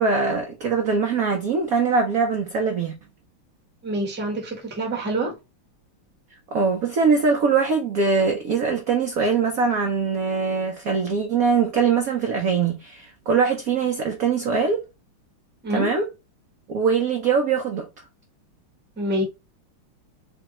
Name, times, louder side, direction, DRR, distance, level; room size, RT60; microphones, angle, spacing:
voice 1, 0.0-2.9 6.5-14.8 15.7-16.1 16.7-17.9, right 5 dB, 65° right, 0.9 m, -22 dB
voice 2, 3.8-5.3 15.6-15.9 19.0-19.2, right 1 dB, 10° right, 0.8 m, -26 dB
3.5 x 3.4 x 2.9 m
omnidirectional pair, 2.3 m